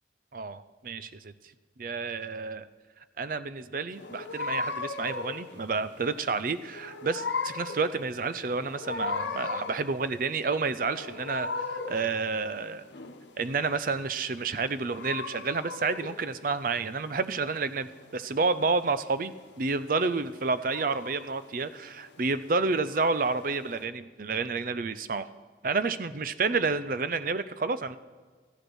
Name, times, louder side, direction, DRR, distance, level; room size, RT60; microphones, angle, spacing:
voice 1, 0.3-1.3 1.8-2.7 3.2-12.9 13.4-25.3 25.6-28.0, right 4 dB, 50° right, 14 dB, 0.5 m, -30 dB
sound 1, 3.9-23.8, left 4 dB, 85° left, 1.0 m, -38 dB
13.5 x 7.8 x 6.3 m, 1.5 s
head